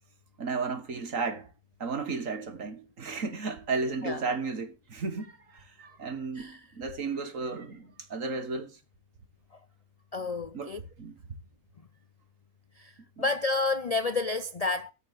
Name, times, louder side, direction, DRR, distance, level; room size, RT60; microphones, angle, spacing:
voice 1, 0.4-1.5 1.8-8.7 10.5-10.7 11.0-11.1 13.2-13.3, right 4 dB, 60° right, 2.0 m, -34 dB
voice 2, 6.3-6.7 9.5-9.6 10.1-10.8 12.8-14.9, left 3 dB, 65° left, 0.3 m, -30 dB
13.5 x 5.2 x 5.4 m
omnidirectional pair, 1.6 m